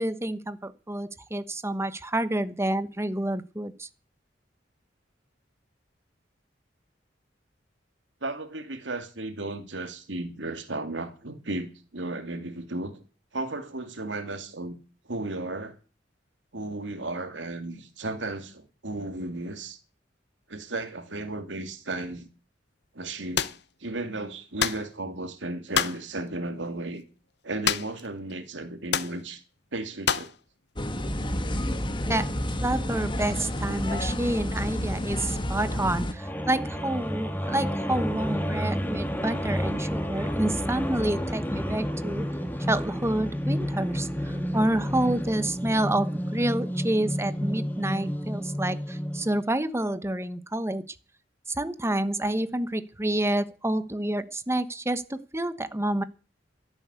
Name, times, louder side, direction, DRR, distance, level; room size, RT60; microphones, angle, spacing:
voice 1, 0.0-3.9 32.1-42.3 42.7-50.8 51.5-56.0, right 1 dB, 15° right, 1.1 m, -28 dB
voice 2, 8.2-13.0 13.3-14.8 15.1-15.7 16.5-19.8 20.5-22.3 22.9-23.5 23.8-27.0 27.4-29.4 29.7-30.3, right 2 dB, 85° right, 2.6 m, -34 dB
sound 1, 23.4-23.6 24.6-24.9 25.7-26.0 27.6-28.1 28.3-28.4 28.9-29.2 30.1-30.4, left 8 dB, 65° left, 0.9 m, -26 dB
sound 2, 30.8-36.1, left 1 dB, 25° left, 1.5 m, -30 dB
sound 3, 36.1-49.4, equal, 10° left, 2.6 m, -30 dB
13.0 x 11.0 x 8.2 m
head